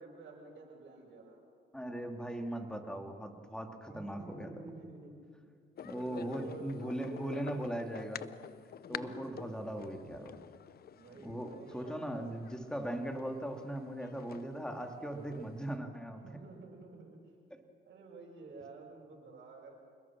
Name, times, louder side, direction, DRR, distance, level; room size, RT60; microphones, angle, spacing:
voice 1, 0.0-1.4 3.8-5.4 5.9-7.4 9.2-9.4 10.9-12.0 16.2-17.2 17.8-19.7, right 3 dB, 65° right, -3 dB, 6.5 m, -50 dB
voice 2, 1.7-4.5 5.8-8.3 8.9-10.4 11.2-16.2, right 1 dB, 5° left, 4 dB, 2.7 m, -39 dB
sound 1, 5.8-15.8, left 9 dB, 50° left, 0.6 m, -49 dB
28.0 x 21.0 x 6.1 m, 2.1 s
cardioid pair, 90°, 20 cm